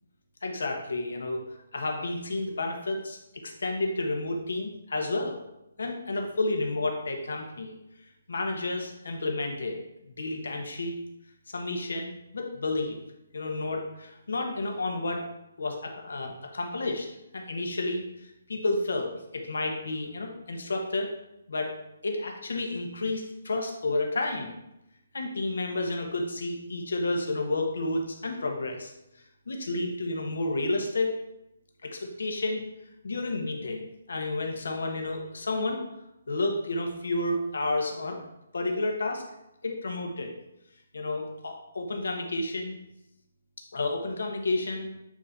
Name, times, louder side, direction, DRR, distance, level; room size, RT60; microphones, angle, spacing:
voice 1, 0.4-1.4 1.7-5.4 5.8-7.7 8.3-9.8 10.2-10.9 11.5-13.0 13.3-15.3 15.6-17.1 17.3-21.1 21.5-21.7 22.0-24.5 25.1-28.9 29.5-31.2 31.8-32.6 33.0-35.8 36.3-38.2 38.5-39.2 39.6-40.3 40.9-42.8 43.7-44.9, left 2 dB, 75° left, 3 dB, 1.2 m, -31 dB
8.4 x 3.1 x 4.1 m, 0.88 s
hypercardioid pair, 180°, 0 cm